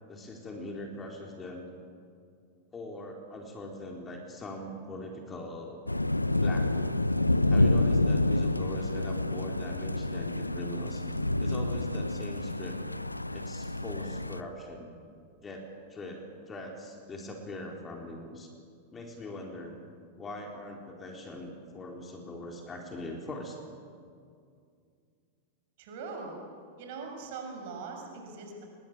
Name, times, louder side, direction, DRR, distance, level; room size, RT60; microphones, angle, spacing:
voice 1, 0.1-1.7 2.7-5.8 6.4-7.0 7.5-11.0 11.4-12.8 13.3-14.9 15.4-18.5 18.9-19.7 20.2-23.6, left 1 dB, 20° left, 1 dB, 4.1 m, -41 dB
sound 1, 5.9-14.4, left 2 dB, 85° left, 0.8 m, -28 dB
voice 2, 25.8-26.4 26.8-28.6, right 4 dB, 50° right, 2 dB, 6.7 m, -41 dB
27.0 x 22.0 x 9.2 m, 2.3 s
figure-of-eight pair, 90°, 0 cm